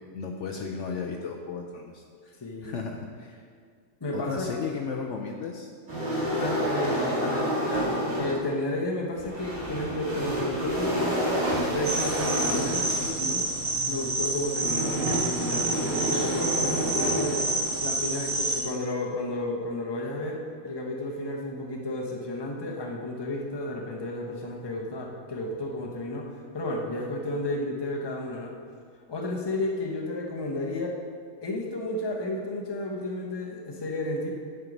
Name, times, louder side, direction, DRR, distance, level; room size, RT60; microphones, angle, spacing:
voice 1, 0.0-2.3 2.6-3.4 4.1-5.7, left 5 dB, 65° left, 1 dB, 0.9 m, -35 dB
voice 2, 2.4-2.7 4.0-4.6 6.4-13.5 13.9-17.5 17.8-28.6 29.1-31.0 31.4-34.3, left 1 dB, 20° left, 0 dB, 0.8 m, -32 dB
sound 1, 5.9-8.5 9.1-18.0, equal, 80° right, 2.6 m, -29 dB
sound 2, 11.8-18.6, right 2 dB, 50° right, 1.6 m, -29 dB
9.6 x 4.6 x 5.2 m, 2.1 s
omnidirectional pair, 1.5 m